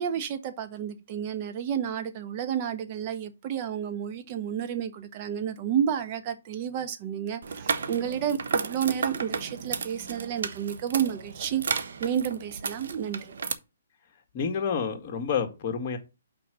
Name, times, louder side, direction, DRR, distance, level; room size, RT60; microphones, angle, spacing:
voice 1, 0.0-13.3, right 9 dB, 35° right, 1.2 m, -31 dB
sound 1, 7.4-13.5, right 5 dB, 65° right, 1.0 m, -33 dB
voice 2, 14.3-16.0, left 6 dB, 35° left, 1.8 m, -29 dB
6.0 x 4.5 x 6.4 m
hypercardioid pair, 145°, 0 cm